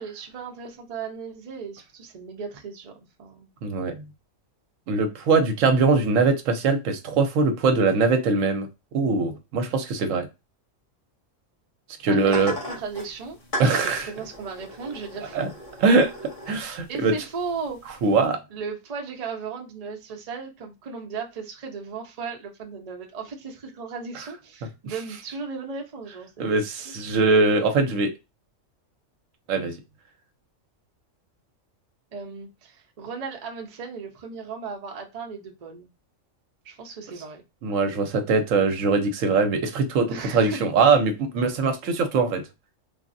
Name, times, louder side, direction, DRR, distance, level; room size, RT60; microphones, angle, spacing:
voice 1, 0.0-2.9 3.2-3.5 12.1-15.4 16.9-17.8 18.5-26.9 32.1-35.9 36.6-37.4 40.1-40.7, right 5 dB, 40° right, 2 dB, 0.6 m, -36 dB
voice 2, 3.6-4.1 4.9-8.7 8.9-10.3 12.0-12.5 13.6-14.1 15.3-15.5 15.8-16.1 16.5-17.1 18.0-18.4 26.4-28.1 29.5-29.7 37.6-42.4, right 4 dB, 80° right, 6 dB, 1.0 m, -22 dB
sound 1, 12.2-18.3, equal, 30° left, 0.8 m, -38 dB
3.4 x 2.0 x 2.5 m, 0.24 s
omnidirectional pair, 1.3 m